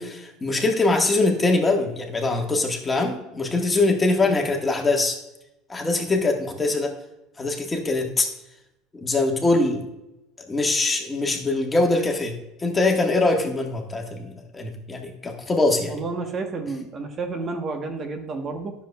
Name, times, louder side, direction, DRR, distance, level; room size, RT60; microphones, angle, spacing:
voice 1, 0.0-5.2 5.7-6.9 7.4-8.3 8.9-9.8 10.5-16.0, left 2 dB, 20° left, 2 dB, 1.5 m, -23 dB
voice 2, 15.9-18.7, right 3 dB, 40° right, 4 dB, 1.1 m, -31 dB
10.0 x 6.8 x 2.3 m, 0.91 s
hypercardioid pair, 85°, 0 cm